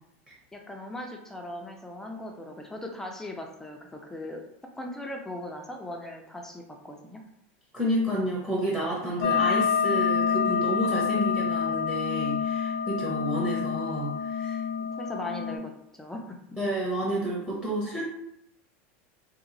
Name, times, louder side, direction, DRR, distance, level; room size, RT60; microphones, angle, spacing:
voice 1, 0.5-4.4 4.7-7.2 14.8-15.7 16.0-16.4, left 1 dB, 5° left, 1 dB, 0.4 m, -39 dB
voice 2, 7.7-14.6 16.6-18.1, equal, 10° right, -4 dB, 0.8 m, -30 dB
sound 1, 9.2-15.6, left 6 dB, 65° left, 0.6 m, -27 dB
2.9 x 2.4 x 3.8 m, 0.77 s
supercardioid pair, 140°, 7 cm